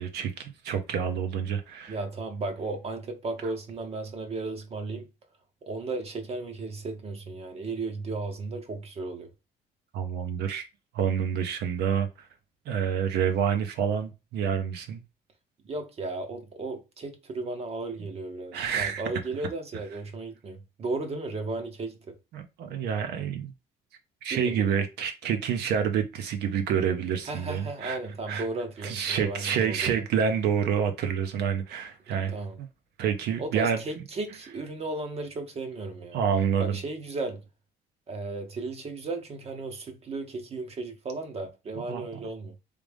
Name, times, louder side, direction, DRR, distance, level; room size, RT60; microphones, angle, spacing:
voice 1, 0.0-2.0 9.9-10.6 10.9-12.3 12.7-15.0 18.5-19.0 22.3-23.5 24.2-28.0 28.3-28.5 28.8-32.7 33.0-34.0 36.1-36.8 41.9-42.0, right 7 dB, 75° right, 0.8 m, -28 dB
voice 2, 1.9-5.1 5.7-9.3 15.6-22.2 24.3-24.7 27.3-30.0 32.1-32.6 33.4-36.2 36.6-37.4 38.1-42.5, right 3 dB, 35° right, 0.8 m, -35 dB
3.4 x 2.5 x 3.4 m
cardioid pair, 110°, 17 cm